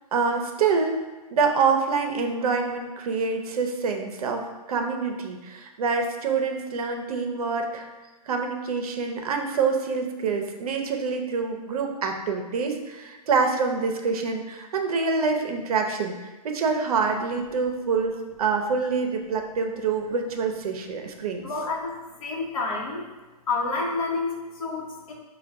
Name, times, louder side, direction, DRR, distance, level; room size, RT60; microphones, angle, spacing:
voice 1, 0.1-1.0 1.3-7.9 8.3-16.2 16.4-21.6, right 5 dB, 65° right, 4 dB, 0.6 m, -26 dB
voice 2, 21.4-23.0 23.5-25.1, left 3 dB, 55° left, 0 dB, 0.9 m, -29 dB
5.5 x 2.2 x 3.4 m, 1.2 s
hypercardioid pair, 170°, 21 cm